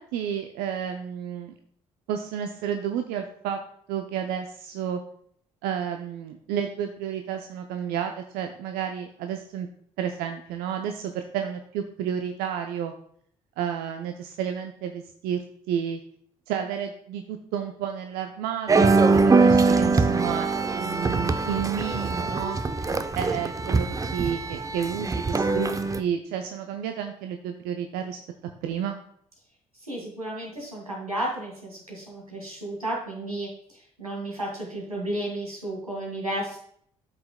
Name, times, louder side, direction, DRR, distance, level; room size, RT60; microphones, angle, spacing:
voice 1, 0.0-1.6 2.1-3.6 3.9-5.0 5.6-9.7 10.0-12.9 13.6-16.0 16.5-22.6 23.1-28.2 28.6-29.0, right 8 dB, 60° right, 6 dB, 0.6 m, -31 dB
sound 1, 18.7-26.0, right 4 dB, 20° right, 0.6 m, -22 dB
voice 2, 29.9-36.6, right 1 dB, 85° right, -2 dB, 1.9 m, -33 dB
12.5 x 5.7 x 2.2 m, 0.64 s
figure-of-eight pair, 50°, 18 cm